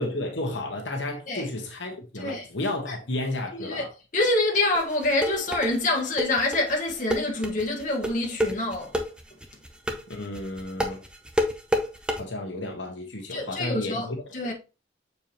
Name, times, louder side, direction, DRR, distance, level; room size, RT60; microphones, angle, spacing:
voice 1, 0.0-3.9 10.1-11.0 12.2-14.2, left 1 dB, 65° left, 1.3 m, -32 dB
voice 2, 2.1-2.5 2.9-3.0 3.5-3.8 4.1-9.0 13.3-14.1 14.3-14.5, left 2 dB, 40° left, 1.4 m, -26 dB
sound 1, 4.7-12.2, equal, 5° right, 0.7 m, -28 dB
6.9 x 4.6 x 2.9 m
head